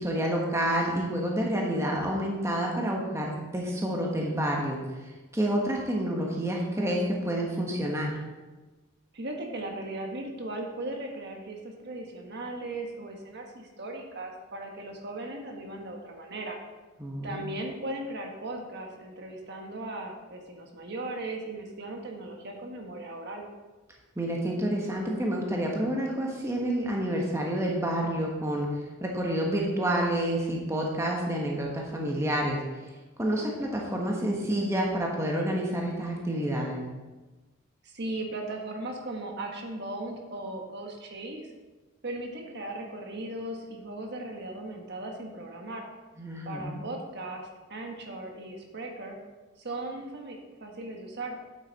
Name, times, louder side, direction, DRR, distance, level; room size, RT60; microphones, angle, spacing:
voice 1, 0.0-8.1 17.0-17.5 24.2-28.7 29.0-32.6 33.2-36.8 46.2-46.8, right 1 dB, 15° right, -1 dB, 1.2 m, -29 dB
voice 2, 9.1-16.6 17.2-23.5 37.8-41.5 42.0-45.9 46.4-49.2 49.6-51.4, right 2 dB, 55° right, 1 dB, 1.3 m, -37 dB
8.5 x 8.1 x 4.1 m, 1.2 s
head